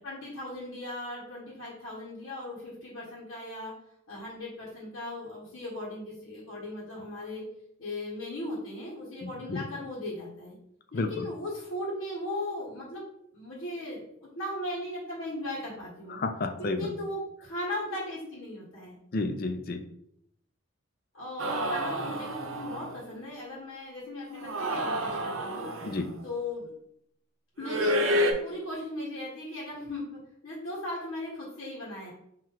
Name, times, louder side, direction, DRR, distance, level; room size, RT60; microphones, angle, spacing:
voice 1, 0.0-3.7 4.1-7.4 7.8-10.5 10.9-13.0 13.3-16.2 16.6-19.0 21.1-25.7 26.2-26.7 27.6-32.1, left 1 dB, 85° left, -7 dB, 1.5 m, -37 dB
voice 2, 9.2-9.6 10.9-11.3 16.2-16.9 19.1-19.8 25.8-26.1, left 3 dB, 45° left, 6 dB, 0.4 m, -31 dB
sound 1, 21.4-23.0 24.3-26.1 27.6-28.3, equal, 80° right, 0.7 m, -29 dB
3.9 x 2.9 x 4.6 m, 0.73 s
head